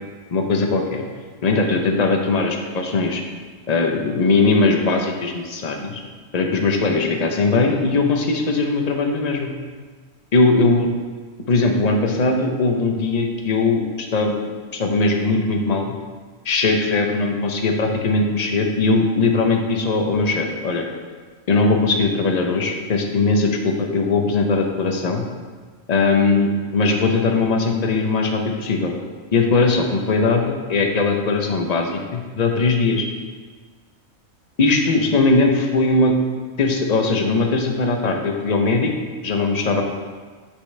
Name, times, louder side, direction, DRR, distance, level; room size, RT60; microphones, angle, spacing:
voice 1, 0.3-1.0 1.4-3.2 3.7-6.0 6.3-9.5 10.3-10.9 11.5-15.9 16.4-20.8 21.5-25.2 25.9-28.9 29.3-33.0 34.6-36.1 36.6-38.9 39.2-39.8, left 3 dB, 40° left, 3 dB, 0.7 m, -20 dB
8.0 x 5.9 x 3.3 m, 1.5 s
omnidirectional pair, 1.4 m